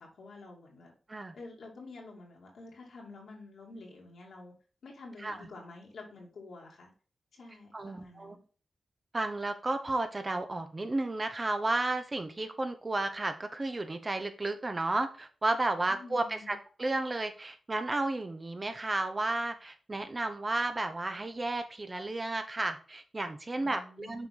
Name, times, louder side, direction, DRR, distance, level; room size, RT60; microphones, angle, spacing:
voice 1, 0.0-0.9 1.3-4.5 4.8-6.9 7.3-8.4 15.9-16.5 23.6-24.3, left 3 dB, 80° left, -2 dB, 2.7 m, -49 dB
voice 2, 7.7-8.4 9.1-24.3, right 2 dB, 35° right, 7 dB, 1.1 m, -33 dB
6.9 x 4.6 x 3.8 m, 0.38 s
cardioid pair, 50°, 0 cm